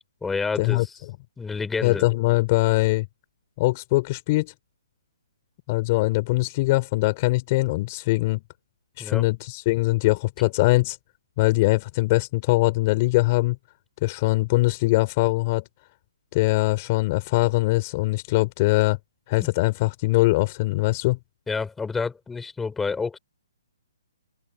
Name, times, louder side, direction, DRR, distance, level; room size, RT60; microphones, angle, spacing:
voice 1, 0.2-1.0 1.4-2.1 9.0-9.3 19.4-19.5 21.5-23.2, left 4 dB, 5° left, 4.6 m, -29 dB
voice 2, 1.8-3.1 3.6-4.5 5.7-8.4 9.0-11.0 11.4-13.6 14.0-15.6 16.3-19.0 19.3-21.2, left 21 dB, 35° left, 3.8 m, -22 dB
open air
hypercardioid pair, 155°, 2 cm